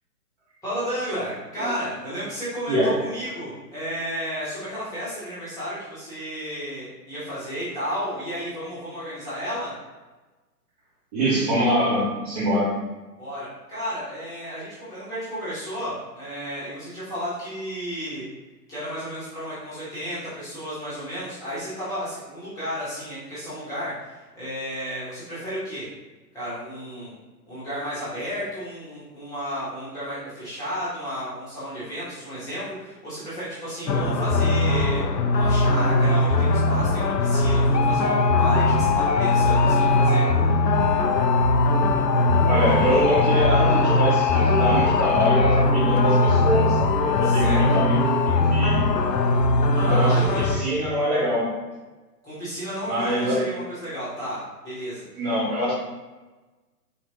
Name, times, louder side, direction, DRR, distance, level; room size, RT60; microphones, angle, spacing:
voice 1, 0.6-9.7 13.2-18.2 18.7-25.9 26.3-27.1 27.5-35.0 35.3-40.2 47.2-47.6 49.7-50.6 52.2-55.0, equal, 5° left, -11 dB, 1.0 m, -33 dB
voice 2, 2.7-3.0 11.1-12.8 42.5-48.9 49.7-51.6 52.8-53.5 55.1-55.7, equal, 25° right, -8 dB, 0.8 m, -24 dB
sound 1, 33.9-50.6, left 2 dB, 80° left, 0.6 m, -20 dB
3.9 x 2.9 x 2.8 m, 1.2 s
figure-of-eight pair, 125°, 49 cm